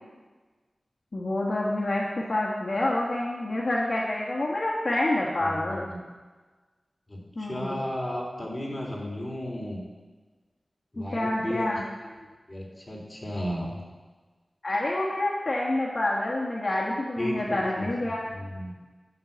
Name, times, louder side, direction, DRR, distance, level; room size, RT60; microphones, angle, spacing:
voice 1, 1.1-5.8 7.4-7.8 11.0-11.8 14.6-18.2, left 1 dB, 55° left, -4 dB, 1.4 m, -27 dB
voice 2, 5.4-6.0 7.1-9.8 10.9-11.7 12.0-13.8 17.2-17.9 18.4-18.8, equal, 25° left, -3 dB, 3.2 m, -34 dB
11.0 x 5.5 x 7.3 m, 1.3 s
wide cardioid pair, 60°, 0 cm